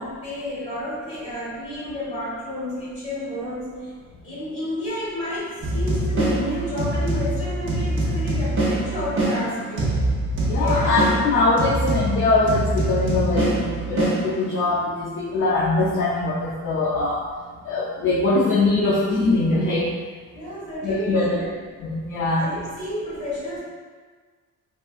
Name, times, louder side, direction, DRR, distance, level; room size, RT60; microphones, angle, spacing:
voice 1, 0.0-3.9 4.2-10.0 10.5-11.0 20.3-21.6 22.3-23.6, left 1 dB, 20° left, -9 dB, 1.4 m, -31 dB
sound 1, 5.6-14.7, right 1 dB, 40° right, 0.7 m, -24 dB
voice 2, 10.5-17.2 17.6-19.9 20.8-21.4 21.8-22.5, left 2 dB, 45° left, -6 dB, 0.4 m, -22 dB
3.6 x 2.4 x 2.4 m, 1.5 s
cardioid pair, 165°, 30 cm